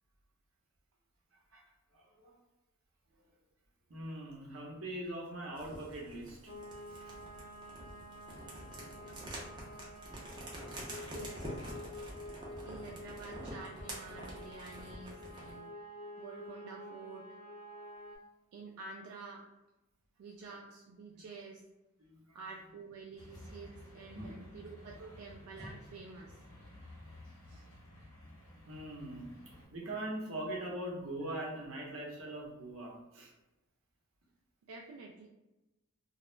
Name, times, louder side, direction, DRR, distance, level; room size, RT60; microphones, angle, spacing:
voice 1, 1.9-2.4 3.1-3.2 3.9-6.4 6.9-7.1 21.1-21.2 22.1-22.3 24.1-24.5 28.7-33.3, right 1 dB, 65° right, -2 dB, 0.7 m, -42 dB
sound 1, 5.6-15.6, right 1 dB, 20° right, 0.5 m, -47 dB
sound 2, 6.5-18.2, left 1 dB, 35° left, 0.5 m, -49 dB
voice 2, 11.1-11.6 12.6-15.7 16.2-17.3 18.5-19.4 20.2-21.6 22.3-26.4 27.5-27.7 34.7-35.3, right 3 dB, 90° right, -1 dB, 0.3 m, -49 dB
sound 3, 23.2-29.7, left 1 dB, 75° left, 0.8 m, -53 dB
2.3 x 2.0 x 3.1 m, 1.0 s
head